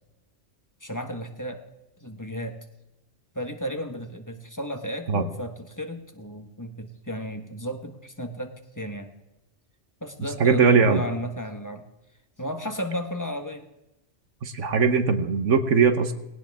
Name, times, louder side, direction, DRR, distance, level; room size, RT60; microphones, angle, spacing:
voice 1, 0.8-1.6 2.0-2.6 3.3-9.1 10.0-11.8 12.4-13.6, equal, 15° left, 6 dB, 1.3 m, -34 dB
voice 2, 10.4-11.0 14.4-16.1, right 5 dB, 80° right, 8 dB, 1.5 m, -20 dB
19.0 x 17.5 x 3.6 m, 0.93 s
omnidirectional pair, 1.3 m